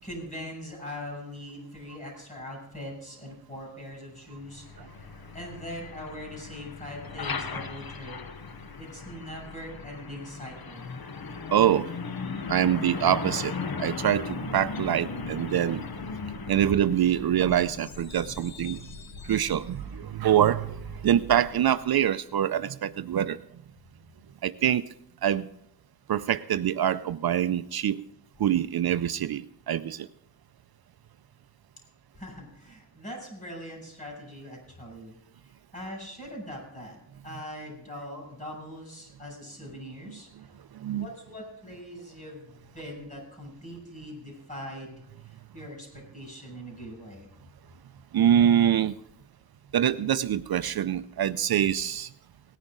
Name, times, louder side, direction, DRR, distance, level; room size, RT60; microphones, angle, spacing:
voice 1, 0.0-4.7 5.3-8.2 8.8-10.8 16.1-16.2 16.5-16.6 32.1-35.2 35.7-37.0 37.2-40.6 40.9-47.3, equal, 20° left, -1 dB, 6.7 m, -41 dB
Truck, 4.3-22.0, left 5 dB, 65° left, 1.0 m, -38 dB
voice 2, 11.5-11.9 12.5-13.5 13.8-15.8 16.5-18.8 19.2-23.4 24.4-24.8 25.2-25.5 26.1-28.0 28.4-30.1 40.7-41.1 48.1-48.9 49.7-52.1, right 10 dB, 70° right, 13 dB, 0.5 m, -25 dB
18.5 x 10.0 x 3.8 m, 0.75 s
wide cardioid pair, 105°, 39 cm